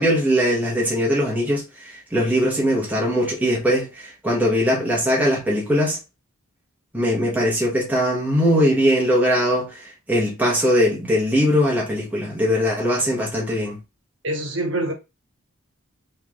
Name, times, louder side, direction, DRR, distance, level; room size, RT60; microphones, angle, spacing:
voice 1, 0.0-6.0 6.9-13.8, equal, 10° right, 1.3 m, -21 dB
voice 2, 14.2-14.9, right 1 dB, 60° right, 1.3 m, -25 dB
3.7 x 3.3 x 3.7 m
head